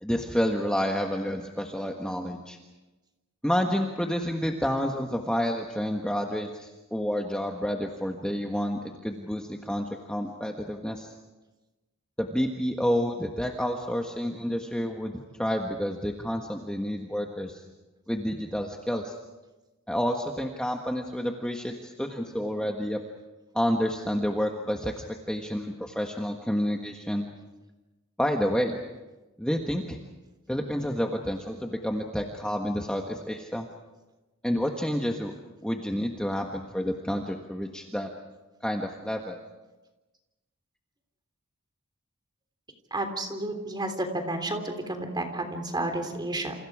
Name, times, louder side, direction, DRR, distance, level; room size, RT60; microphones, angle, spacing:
voice 1, 0.0-2.6 3.4-11.1 12.2-17.6 18.1-19.2 19.9-23.0 23.5-27.3 28.2-28.7 29.4-30.0 30.5-33.7 34.4-35.3 35.6-38.1 38.6-39.4, equal, 5° left, 1 dB, 1.4 m, -29 dB
voice 2, 42.9-46.5, right 2 dB, 20° right, 6 dB, 3.4 m, -31 dB
29.0 x 28.5 x 4.9 m, 1.1 s
head